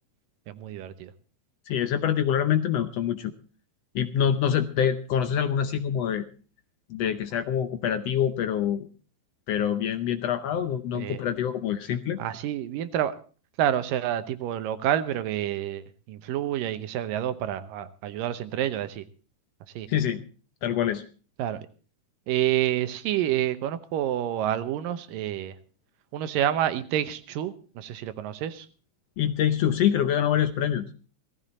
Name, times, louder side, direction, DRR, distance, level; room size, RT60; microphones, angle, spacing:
voice 1, 0.5-1.1 10.9-11.2 12.2-13.2 13.6-19.0 19.8-19.9 21.4-21.6 22.3-25.5 26.1-28.7, right 11 dB, 85° right, 12 dB, 2.7 m, -28 dB
voice 2, 1.7-3.3 3.9-6.3 6.9-8.9 9.5-12.2 19.9-20.2 20.6-21.0 29.2-30.9, left 9 dB, 75° left, 9 dB, 1.5 m, -25 dB
17.5 x 14.5 x 4.2 m, 0.38 s
omnidirectional pair, 3.8 m